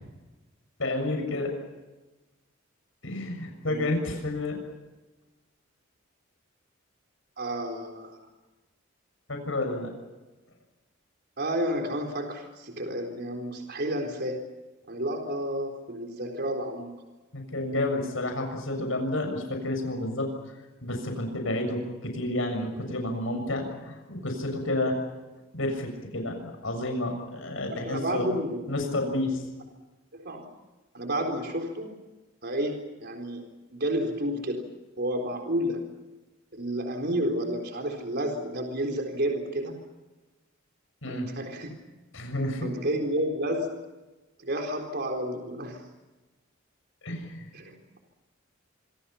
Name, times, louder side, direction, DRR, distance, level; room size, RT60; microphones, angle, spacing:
voice 1, 0.8-1.5 3.0-4.6 9.3-9.9 17.3-20.3 20.8-25.0 25.5-28.3 28.7-29.4 41.0-41.3 42.1-42.7 47.0-47.5, left 1 dB, 75° left, 4 dB, 6.8 m, -30 dB
voice 2, 7.4-8.2 11.4-14.5 14.9-16.9 27.7-28.6 30.1-30.4 30.9-31.9 32.4-33.4 33.7-34.7 35.0-35.9 36.5-39.8 41.1-41.7 42.6-43.8 44.4-45.8 47.5-48.0, right 1 dB, 55° right, 3 dB, 4.1 m, -31 dB
26.5 x 26.0 x 5.8 m, 1.1 s
head